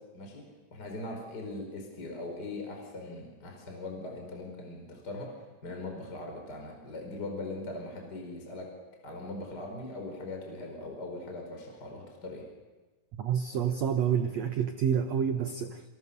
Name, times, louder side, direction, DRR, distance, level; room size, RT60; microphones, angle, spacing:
voice 1, 0.7-5.3 5.6-8.7 9.0-12.4, left 2 dB, 25° left, 2 dB, 4.9 m, -40 dB
voice 2, 13.2-15.8, right 8 dB, 90° right, 8 dB, 1.5 m, -28 dB
29.5 x 27.5 x 6.8 m, 1.2 s
omnidirectional pair, 4.7 m